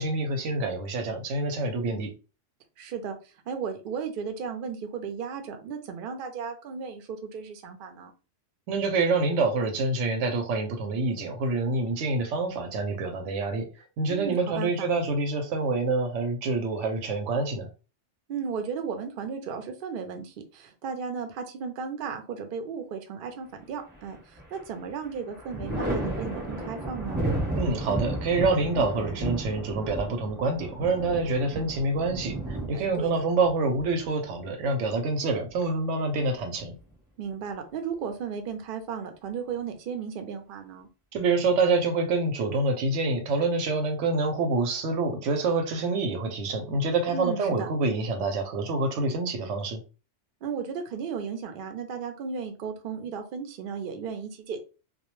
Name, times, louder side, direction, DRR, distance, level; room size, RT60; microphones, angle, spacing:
voice 1, 0.0-2.1 8.7-13.7 14.0-17.7 27.6-36.7 41.1-49.8, right 3 dB, 85° right, 1.0 m, -27 dB
voice 2, 2.8-3.2 3.5-8.1 14.1-14.9 18.3-27.2 32.7-33.3 37.2-40.9 47.1-47.7 50.4-54.6, right 6 dB, 60° right, 0.6 m, -35 dB
Thunder, 23.9-24.7 25.0-34.6 36.1-36.9, right 1 dB, 10° right, 0.8 m, -33 dB
2.2 x 2.1 x 2.9 m
omnidirectional pair, 1.2 m